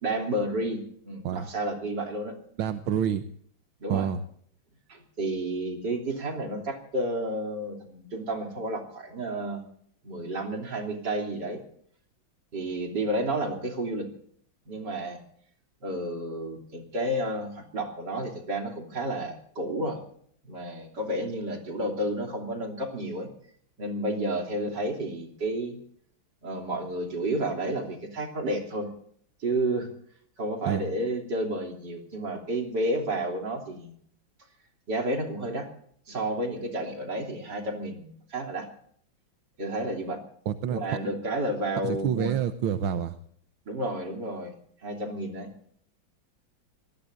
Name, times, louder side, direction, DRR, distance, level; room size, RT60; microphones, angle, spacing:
voice 1, 0.0-2.4 3.8-4.1 4.9-9.6 10.0-11.6 12.5-14.1 14.7-15.2 15.8-20.0 20.5-23.3 23.8-25.8 26.4-28.9 29.4-29.9 30.4-34.0 34.9-35.7 36.1-38.7 39.6-40.2 40.7-42.4 43.7-44.5 44.8-45.5, right 1 dB, 60° right, 2 dB, 3.8 m, -31 dB
voice 2, 2.6-3.2 3.9-4.2 30.6-30.8 40.5-40.8 41.8-43.2, right 9 dB, 85° right, 9 dB, 1.6 m, -28 dB
27.5 x 19.0 x 2.6 m, 0.63 s
omnidirectional pair, 2.2 m